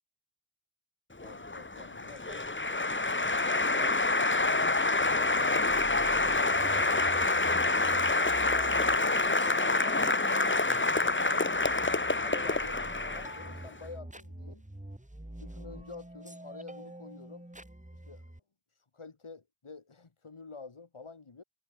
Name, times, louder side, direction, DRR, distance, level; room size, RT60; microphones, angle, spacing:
voice 1, 1.2-2.4 3.5-6.4 6.7-7.1 7.9-11.7 12.0-14.6 15.4-17.5 18.1-18.3 18.7-21.4, left 4 dB, 85° left, 5.7 m, -49 dB
Applause, 1.2-13.7, left 2 dB, 25° left, 1.4 m, -27 dB
sound 1, 4.7-18.4, right 1 dB, 15° right, 3.3 m, -47 dB
wide cardioid pair, 40°, 49 cm